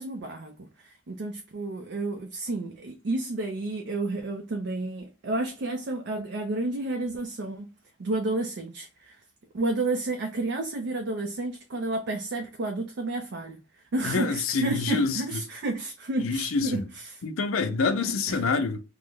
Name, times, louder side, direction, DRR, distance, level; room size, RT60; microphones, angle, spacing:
voice 1, 0.0-7.7 8.0-9.2 9.5-17.2 18.0-18.4, right 2 dB, 60° right, 0.4 m, -31 dB
voice 2, 14.0-15.4 16.2-16.8 17.2-18.8, left 4 dB, 85° left, 0.5 m, -27 dB
3.0 x 2.0 x 3.5 m
head